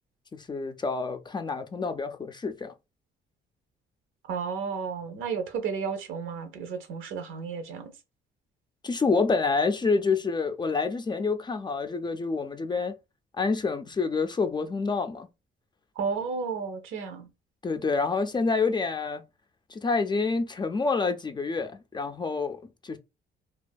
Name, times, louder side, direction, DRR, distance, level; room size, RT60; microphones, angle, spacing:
voice 1, 0.3-2.7 8.8-13.0 13.3-15.3 17.6-19.2 19.7-23.0, left 4 dB, 20° left, 0.3 m, -28 dB
voice 2, 4.3-7.9 16.0-17.3, right 5 dB, 80° right, 0.6 m, -32 dB
2.5 x 2.4 x 2.2 m
cardioid pair, 90°, 20 cm